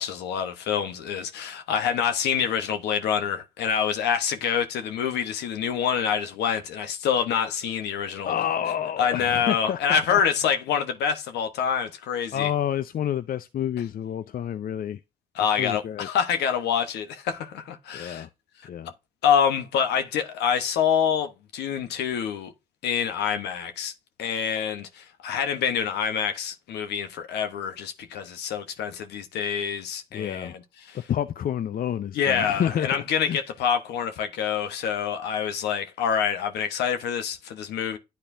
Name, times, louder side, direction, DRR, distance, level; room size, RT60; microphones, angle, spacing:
voice 1, 0.0-8.3 9.0-12.5 15.3-18.3 19.2-22.5 22.8-23.9 24.2-31.0 32.1-38.0, left 7 dB, 80° left, 1.0 m, -26 dB
voice 2, 8.2-10.2 12.3-15.0 15.6-16.1 17.9-18.3 18.7-18.9 30.1-30.6 31.1-33.4, left 10 dB, 60° left, 0.5 m, -29 dB
10.0 x 4.2 x 2.6 m
supercardioid pair, 50°, 17 cm